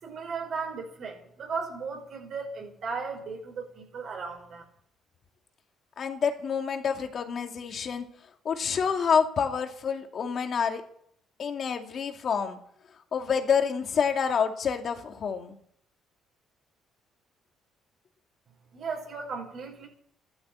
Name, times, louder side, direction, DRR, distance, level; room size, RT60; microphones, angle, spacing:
voice 1, 0.0-4.6 18.7-19.9, right 5 dB, 60° right, 0 dB, 5.5 m, -36 dB
voice 2, 6.0-8.1 8.4-10.8 11.4-12.6 13.1-15.6, left 6 dB, 50° left, 5 dB, 2.3 m, -28 dB
13.5 x 12.5 x 8.7 m, 0.68 s
cardioid pair, 90°, 0 cm